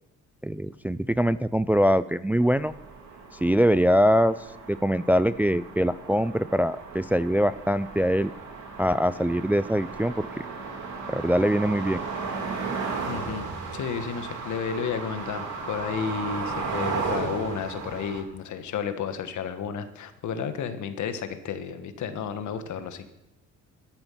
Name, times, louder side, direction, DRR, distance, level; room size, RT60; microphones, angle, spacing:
voice 1, 0.4-2.7 3.4-4.4 4.7-8.3 8.8-10.3 11.1-12.0, equal, 5° right, 15 dB, 0.3 m, -23 dB
sound 1, 2.4-18.2, right 4 dB, 70° right, 3.2 m, -35 dB
voice 2, 13.1-13.5 13.7-23.1, left 7 dB, 70° left, 9 dB, 1.5 m, -32 dB
13.5 x 10.5 x 5.8 m, 0.92 s
cardioid pair, 90°, 30 cm